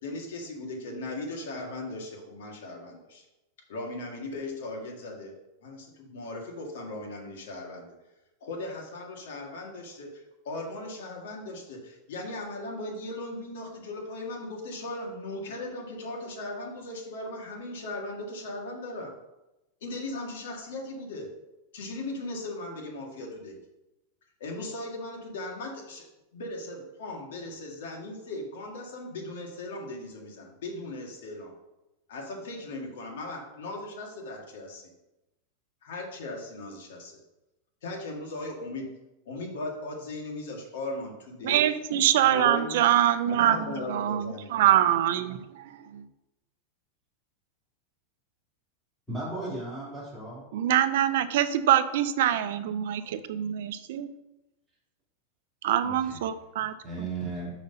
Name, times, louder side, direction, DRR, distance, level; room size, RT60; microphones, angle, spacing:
voice 1, 0.0-3.2 3.7-5.3 5.6-7.9 8.4-19.1 19.8-21.3 21.7-23.6 24.4-26.0 26.3-31.5 32.1-34.9 35.8-37.2 37.8-38.9 39.3-41.6 42.3-42.8 43.2-44.6, left 2 dB, 75° left, 0 dB, 1.9 m, -38 dB
voice 2, 41.4-46.0 50.5-54.1 55.6-56.7, right 11 dB, 65° right, 12 dB, 0.5 m, -24 dB
voice 3, 49.1-50.4 53.0-53.1 55.8-56.2 56.8-57.5, right 2 dB, ahead, -9 dB, 2.8 m, -36 dB
5.6 x 4.9 x 5.4 m, 0.98 s
supercardioid pair, 165°, 0 cm